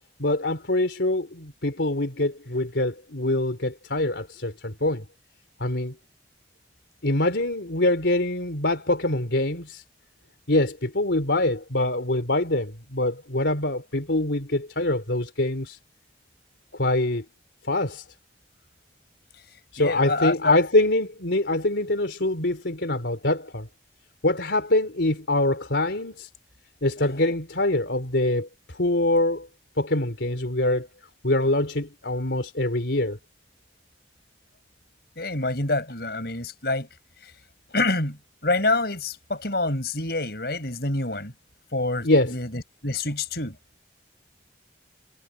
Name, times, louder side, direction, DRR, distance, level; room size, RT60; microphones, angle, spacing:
voice 1, 0.2-5.0 5.6-5.9 7.0-9.8 10.5-15.8 16.7-17.2 17.7-18.0 19.7-23.7 24.2-26.3 26.8-29.5 29.8-30.9 31.2-33.2 42.0-42.3, left 1 dB, 75° left, 3.3 m, -24 dB
voice 2, 19.8-20.6 35.2-36.9 37.7-41.3 41.7-43.5, left 2 dB, 60° left, 6.0 m, -27 dB
head